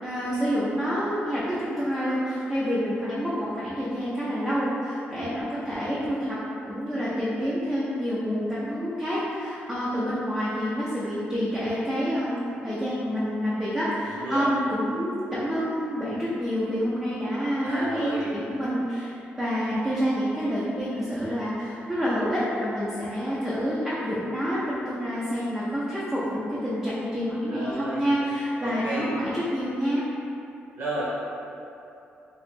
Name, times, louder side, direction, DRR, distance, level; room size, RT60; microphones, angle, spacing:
voice 1, 0.0-6.4 6.7-30.0, equal, 5° right, -9 dB, 0.4 m, -28 dB
voice 2, 14.0-14.4 17.6-18.3 27.5-28.1 28.6-29.1 30.8-31.1, right 1 dB, 60° right, -8 dB, 1.0 m, -32 dB
3.2 x 2.9 x 3.2 m, 2.8 s
wide cardioid pair, 170°, 4 cm